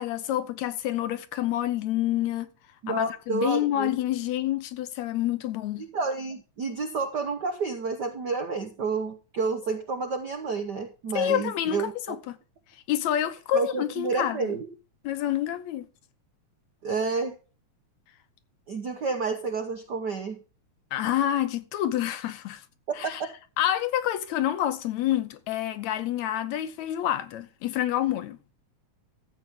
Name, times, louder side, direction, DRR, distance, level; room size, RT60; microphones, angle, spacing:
voice 1, 0.0-2.5 2.9-5.8 11.1-12.4 12.9-14.5 15.0-15.9 20.9-22.6 23.0-23.2 23.6-28.4, left 12 dB, 75° left, 2.1 m, -28 dB
voice 2, 2.8-3.9 5.8-12.2 13.5-14.7 16.8-17.4 18.7-20.4 23.0-23.3, right 4 dB, 65° right, 1.0 m, -30 dB
14.0 x 7.9 x 3.7 m
omnidirectional pair, 3.3 m